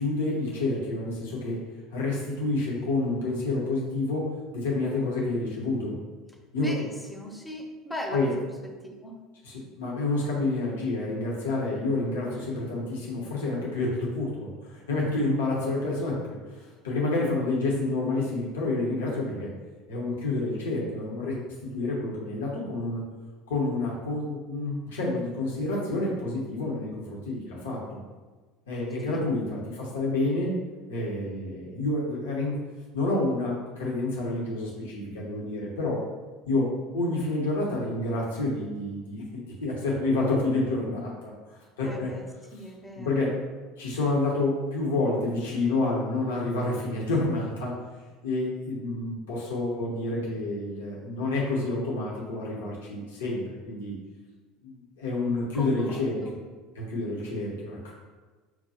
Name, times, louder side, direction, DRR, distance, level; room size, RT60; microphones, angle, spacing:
voice 1, 0.0-1.6 1.9-4.2 4.5-5.9 6.5-6.7 8.1-8.3 9.4-19.5 19.9-21.4 21.7-23.0 23.5-27.8 28.7-30.5 30.9-32.6 32.9-36.0 36.5-42.1 42.9-43.3 43.8-47.7 48.2-53.9 54.6-56.2 56.8-57.8, left 2 dB, 70° left, -3 dB, 0.8 m, -29 dB
voice 2, 6.5-8.4 8.8-9.2 29.1-29.2 41.8-42.3 42.5-43.2 55.5-56.4, equal, 5° left, 0 dB, 0.7 m, -39 dB
5.9 x 2.2 x 2.8 m, 1.3 s
figure-of-eight pair, 65°, 0 cm